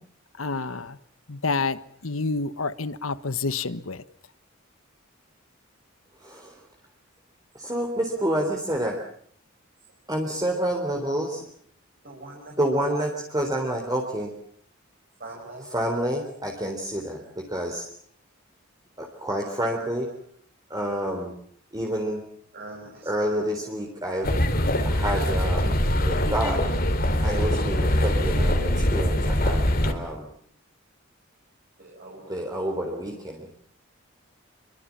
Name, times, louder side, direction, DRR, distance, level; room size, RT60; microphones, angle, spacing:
voice 1, 0.4-0.9 1.3-4.0, left 4 dB, 85° left, 14 dB, 1.3 m, -28 dB
voice 2, 6.2-6.5 7.6-9.0 10.1-11.4 12.6-14.3 15.6-17.9 19.0-20.1 20.7-21.3 21.7-22.2 23.0-24.3 24.8-25.8 26.0-26.6 27.2-30.3 32.3-33.5, right 1 dB, 20° right, 1 dB, 3.8 m, -28 dB
voice 3, 12.0-12.5 15.2-15.6 22.5-22.9 27.7-27.8 29.3-29.5 32.0-32.2, right 2 dB, 50° right, -1 dB, 6.1 m, -41 dB
sound 1, 24.2-29.9, left 1 dB, 45° left, 3.8 m, -23 dB
27.0 x 24.5 x 7.4 m, 0.62 s
head